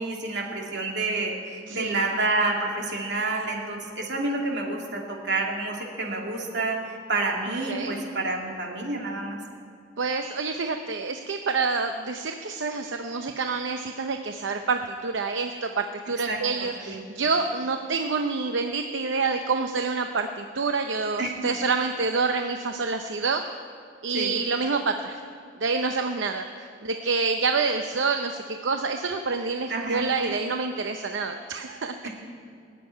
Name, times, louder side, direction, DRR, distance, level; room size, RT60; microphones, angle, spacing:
voice 1, 0.0-9.4 16.3-17.0 21.2-21.3 24.1-24.3 29.7-30.3 32.0-32.1, right 2 dB, 65° right, 0 dB, 2.7 m, -29 dB
voice 2, 1.7-2.0 7.7-7.9 10.0-23.4 24.0-25.2 25.6-32.1, right 4 dB, 80° right, 6 dB, 0.7 m, -27 dB
19.0 x 7.7 x 9.7 m, 2.5 s
head